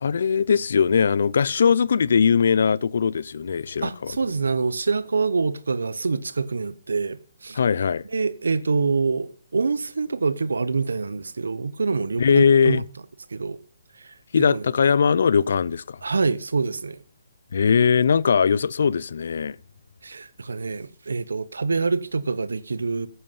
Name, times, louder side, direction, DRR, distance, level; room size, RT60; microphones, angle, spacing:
voice 1, 0.0-4.1 7.6-8.0 12.2-12.8 14.3-16.0 17.5-19.6, left 6 dB, 65° left, 0.4 m, -20 dB
voice 2, 3.8-7.6 8.0-12.8 13.3-13.6 14.0-14.2 14.5-14.6 16.0-17.0 20.0-23.1, right 4 dB, 85° right, 0.8 m, -26 dB
9.9 x 7.6 x 5.6 m
hypercardioid pair, 155°, 0 cm